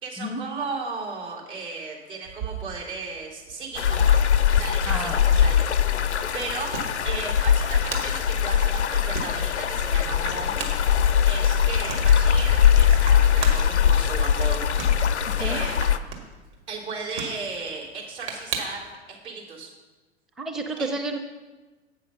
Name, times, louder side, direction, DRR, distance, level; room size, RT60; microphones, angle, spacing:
voice 1, 0.0-4.2 4.5-6.8 7.0-10.6 11.2-14.6 15.4-16.0 16.7-19.7 20.8-20.9, right 4 dB, 80° right, -5 dB, 3.3 m, -36 dB
sound 1, 2.2-19.0, right 5 dB, 60° right, 1.9 m, -40 dB
sound 2, 3.7-16.0, left 8 dB, 85° left, 0.6 m, -21 dB
voice 2, 4.9-5.2 15.4-15.6 20.4-21.2, right 1 dB, ahead, 4 dB, 0.5 m, -30 dB
8.3 x 6.3 x 5.7 m, 1.2 s
figure-of-eight pair, 95°, 33 cm